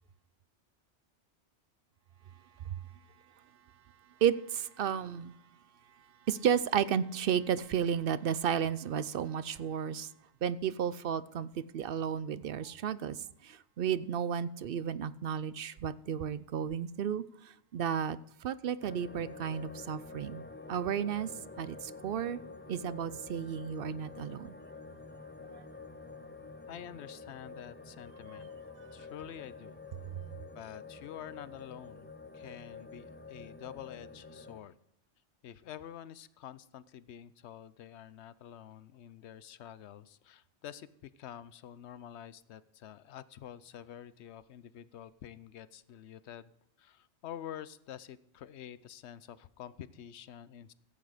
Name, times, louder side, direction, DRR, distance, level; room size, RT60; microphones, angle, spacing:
voice 1, 4.2-5.3 6.3-10.1 10.4-20.4 20.7-21.3 21.6-22.4 22.7-24.5 25.5-25.6, right 8 dB, 60° right, 0.7 m, -33 dB
sound 1, 18.8-34.6, left 3 dB, 10° left, 0.6 m, -48 dB
voice 2, 26.7-28.5 28.9-29.8 30.5-34.8 35.4-46.5 46.8-50.7, left 10 dB, 75° left, 0.9 m, -48 dB
15.0 x 8.3 x 5.0 m
omnidirectional pair, 1.2 m